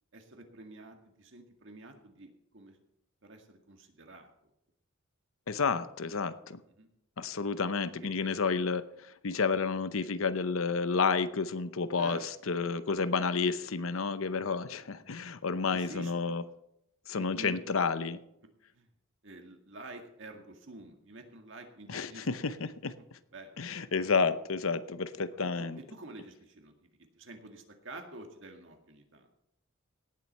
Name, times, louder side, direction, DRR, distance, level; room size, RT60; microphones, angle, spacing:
voice 1, 0.1-2.8 3.2-4.3 6.8-6.9 8.2-8.3 12.0-12.2 12.9-13.0 15.7-16.4 17.1-17.6 18.7-18.9 19.2-22.3 23.3-23.6 25.6-29.3, right 2 dB, 60° right, 4 dB, 2.0 m, -48 dB
voice 2, 5.5-6.6 7.2-16.4 17.1-18.2 21.9-22.9 23.6-25.8, left 4 dB, 80° left, 13 dB, 0.8 m, -31 dB
17.5 x 7.7 x 5.4 m, 0.79 s
head